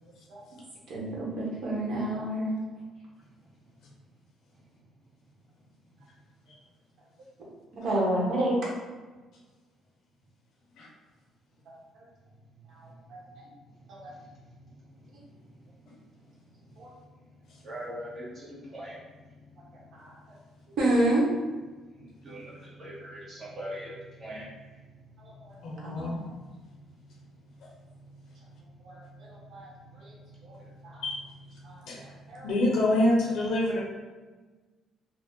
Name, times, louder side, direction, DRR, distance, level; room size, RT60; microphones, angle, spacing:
voice 1, 0.9-2.5 7.7-8.6 11.7-11.8 13.1-13.2 13.9-14.1 16.8-16.9 19.9-20.1 20.8-21.3 25.2-25.5 25.8-26.3 28.8-29.7 30.0-30.1 30.4-30.6 30.8-31.0 31.6-32.5, right 1 dB, 60° right, -5 dB, 1.0 m, -30 dB
voice 2, 13.9-15.1 17.6-19.7 21.9-26.2 26.9-29.3 29.7-31.0 31.6-32.4, equal, 35° right, -8 dB, 1.2 m, -45 dB
voice 3, 25.6-26.1 31.0-31.2 31.8-32.0 32.4-33.8, left 1 dB, 65° left, -3 dB, 0.6 m, -26 dB
2.7 x 2.1 x 3.6 m, 1.3 s
cardioid pair, 135°, 0 cm